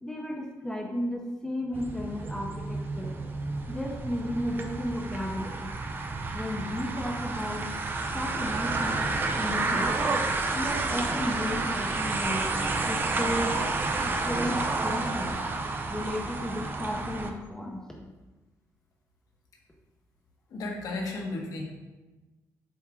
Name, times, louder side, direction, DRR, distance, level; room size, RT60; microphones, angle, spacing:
voice 1, 0.0-3.1 3.7-5.7 6.3-7.7 8.1-9.1 9.3-10.0 10.5-12.5 12.9-13.6 14.0-15.4 15.9-17.8, left 1 dB, 10° left, -1 dB, 0.7 m, -33 dB
sound 1, 1.7-17.3, right 3 dB, 30° right, 0.5 m, -30 dB
voice 2, 20.5-21.7, left 2 dB, 70° left, 0 dB, 1.3 m, -34 dB
7.3 x 3.6 x 3.7 m, 1.2 s
cardioid pair, 130°, 6 cm